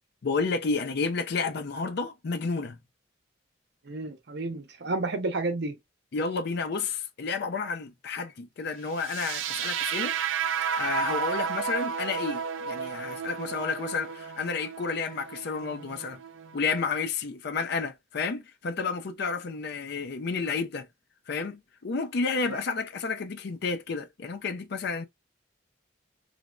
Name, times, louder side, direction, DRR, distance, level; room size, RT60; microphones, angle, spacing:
voice 1, 0.2-2.8 6.1-10.2 10.8-16.2 16.5-20.9 21.3-25.0, left 4 dB, 60° left, 0.4 m, -31 dB
voice 2, 3.8-5.8 22.5-22.6, right 2 dB, 60° right, 0.7 m, -31 dB
sound 1, 9.0-17.0, right 7 dB, 90° right, 0.4 m, -33 dB
3.4 x 2.1 x 2.2 m
head